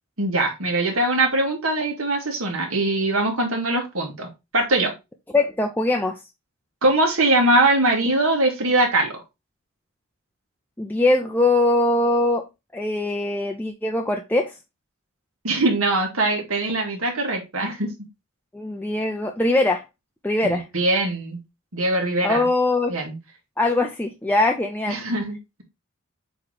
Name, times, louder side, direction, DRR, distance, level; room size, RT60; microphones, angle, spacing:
voice 1, 0.2-4.9 6.8-9.2 15.4-17.9 20.4-21.4 21.7-22.5 22.9-23.2 24.9-25.6, right 2 dB, 70° right, 2.1 m, -22 dB
voice 2, 5.3-6.2 10.8-12.4 12.7-14.5 18.5-19.8 20.2-20.6 22.2-23.0 23.6-25.0, left 2 dB, 10° left, 0.6 m, -21 dB
7.6 x 3.2 x 4.0 m
head